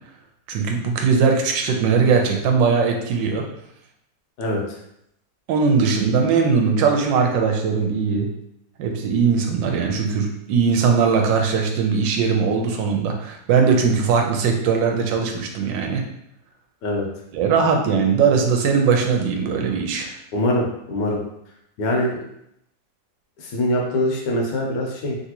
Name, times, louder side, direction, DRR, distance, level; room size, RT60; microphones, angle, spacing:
voice 1, 0.5-3.5 5.5-8.3 8.8-16.0 17.3-20.1, right 5 dB, 85° right, 3 dB, 1.3 m, -20 dB
voice 2, 4.4-4.8 16.8-17.1 20.3-21.2 21.8-22.2 23.4-25.2, left 1 dB, 80° left, -1 dB, 1.4 m, -23 dB
3.3 x 2.6 x 2.8 m, 0.77 s
omnidirectional pair, 2.0 m